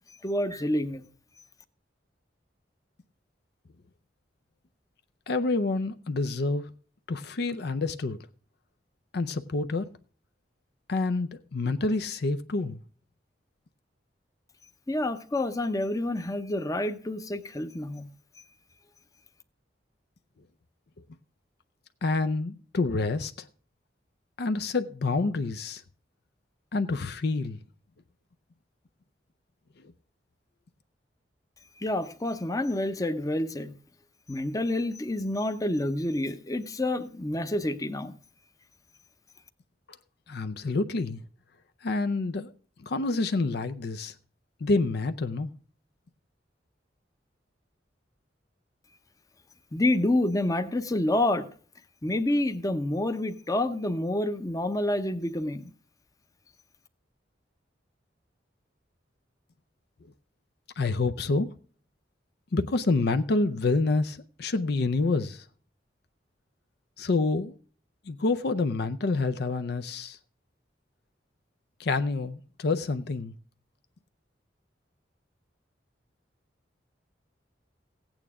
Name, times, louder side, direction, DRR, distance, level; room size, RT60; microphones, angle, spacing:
voice 1, 0.2-1.1 14.9-18.1 31.8-33.7 34.3-38.2 49.7-51.5 52.0-55.7, left 1 dB, 20° left, 0.7 m, -28 dB
voice 2, 5.3-6.7 7.1-8.2 9.1-9.9 10.9-12.8 22.0-23.5 24.4-25.8 26.7-27.6 40.3-41.2 41.8-42.5 42.8-44.1 44.6-45.5 60.8-61.5 62.5-65.4 67.0-67.6 68.1-70.2 71.8-73.3, left 3 dB, 60° left, 0.5 m, -27 dB
15.5 x 8.9 x 3.6 m
head